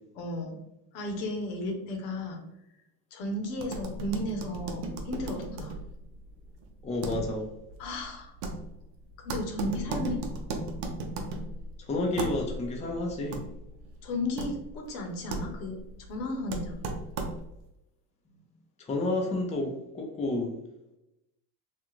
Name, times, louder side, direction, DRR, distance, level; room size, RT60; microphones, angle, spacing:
voice 1, 0.1-0.6 0.9-2.4 3.1-5.8 7.8-8.3 9.2-10.2 14.0-15.8 16.1-16.8, left 1 dB, 80° left, 2 dB, 0.8 m, -34 dB
sound 1, 3.5-17.7, right 2 dB, 85° right, 0.6 m, -37 dB
voice 2, 6.8-7.5 11.8-13.4 18.3-18.4 18.8-20.5, left 2 dB, 15° left, 0 dB, 0.5 m, -30 dB
2.4 x 2.4 x 3.0 m, 0.88 s
supercardioid pair, 90°, 49 cm